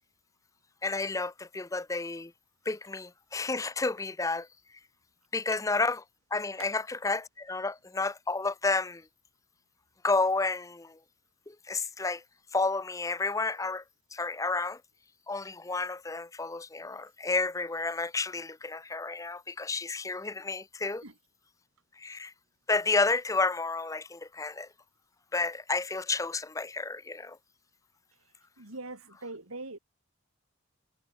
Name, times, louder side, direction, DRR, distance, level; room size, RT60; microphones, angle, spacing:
voice 1, 0.8-2.3 2.7-4.5 5.3-6.0 6.3-9.1 10.0-11.0 11.5-12.2 12.5-13.8 14.1-14.8 15.3-21.0 22.0-22.3 22.7-24.7 25.3-27.4, left 3 dB, 15° left, 0.5 m, -31 dB
voice 2, 28.6-29.8, right 2 dB, 85° right, 3.8 m, -42 dB
head